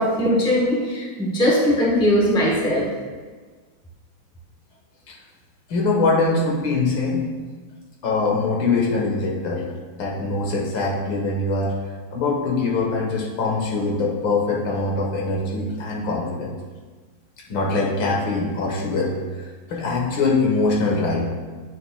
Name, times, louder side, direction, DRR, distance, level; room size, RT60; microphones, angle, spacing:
voice 1, 0.0-2.9, equal, 5° left, -3 dB, 0.7 m, -20 dB
voice 2, 5.7-7.3 8.0-9.7 9.9-11.8 12.1-16.5 17.5-19.1 19.4-21.3, left 3 dB, 90° left, -2 dB, 2.0 m, -23 dB
9.4 x 6.5 x 2.2 m, 1.4 s
omnidirectional pair, 2.1 m